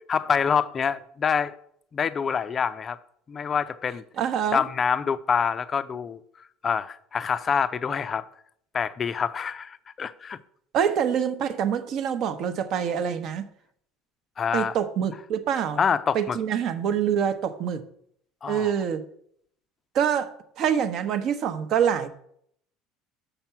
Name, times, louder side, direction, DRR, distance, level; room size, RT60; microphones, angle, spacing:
voice 1, 0.1-1.6 1.9-3.0 3.3-4.0 4.5-6.2 6.6-8.2 8.7-10.4 14.4-14.8 15.8-16.4 18.4-18.7, left 6 dB, 25° left, 0.4 m, -26 dB
voice 2, 4.2-4.6 10.7-13.5 14.5-15.8 16.1-17.8 18.5-19.0 19.9-22.1, right 8 dB, 50° right, 0.8 m, -25 dB
6.8 x 5.9 x 5.7 m
cardioid pair, 145°, 0 cm